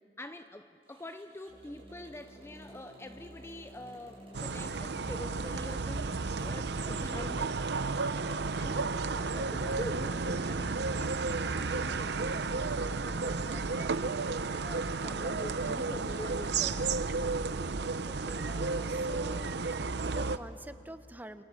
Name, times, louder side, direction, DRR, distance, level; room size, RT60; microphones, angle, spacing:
voice 1, 0.2-7.6 8.6-9.0 9.3-16.9, left 1 dB, 15° left, 9 dB, 0.6 m, -45 dB
Motorcycle, 0.8-6.7, right 1 dB, 30° right, 7.3 m, -55 dB
sound 1, 1.5-7.5, equal, 50° left, 2.9 m, -53 dB
sound 2, 4.3-20.4, right 4 dB, 65° right, 0.8 m, -32 dB
voice 2, 17.5-21.4, right 1 dB, 10° right, 10 dB, 0.9 m, -48 dB
30.0 x 25.5 x 7.5 m, 2.4 s
head